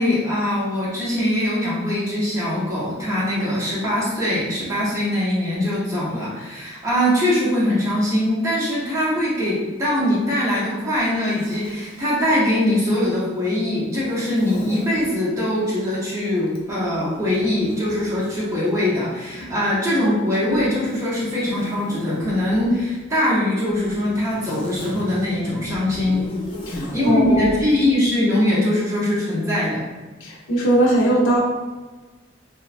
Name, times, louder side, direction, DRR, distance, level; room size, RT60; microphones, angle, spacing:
voice 1, 0.0-26.2 26.9-29.8, left 1 dB, 15° right, -8 dB, 0.7 m, -22 dB
Zipper (clothing), 10.9-12.3 14.0-15.1 16.5-19.7 20.5-22.8 23.7-27.7, left 1 dB, 25° left, 0.3 m, -37 dB
voice 2, 26.7-27.6 30.2-31.4, right 1 dB, 80° left, -4 dB, 0.5 m, -20 dB
3.0 x 2.1 x 2.4 m, 1.3 s
head